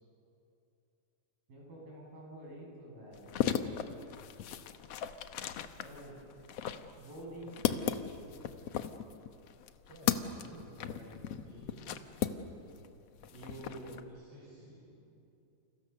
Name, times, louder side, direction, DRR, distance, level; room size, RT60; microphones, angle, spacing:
voice 1, 1.5-3.4 5.8-6.2 7.0-8.0 10.3-11.4 13.3-14.0, right 1 dB, 80° right, -2 dB, 8.7 m, -48 dB
sound 1, 3.1-12.9 13.2-14.0, left 10 dB, 70° left, 1.5 m, -36 dB
voice 2, 9.9-10.2 11.4-12.0 13.5-13.8 14.1-14.9, right 1 dB, 40° right, -5 dB, 6.9 m, -54 dB
30.0 x 29.5 x 6.8 m, 2.8 s
omnidirectional pair, 4.0 m